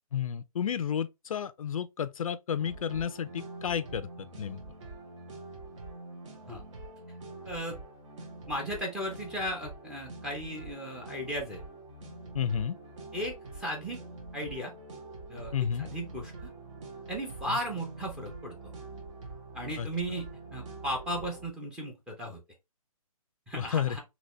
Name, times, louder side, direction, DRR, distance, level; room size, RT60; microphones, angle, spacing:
voice 1, 0.1-4.6 12.3-12.8 15.5-15.9 19.8-19.9 23.6-24.0, left 8 dB, 65° left, 0.4 m, -31 dB
sound 1, 2.6-21.5, right 3 dB, 55° right, 1.8 m, -45 dB
voice 2, 7.4-7.8 8.5-11.6 13.1-14.0 14.3-14.7 15.3-15.5 15.8-16.5 17.1-18.6 19.5-20.3 20.5-22.4 23.5-24.0, equal, 5° right, 0.7 m, -36 dB
4.0 x 3.0 x 3.1 m
hypercardioid pair, 160°, 19 cm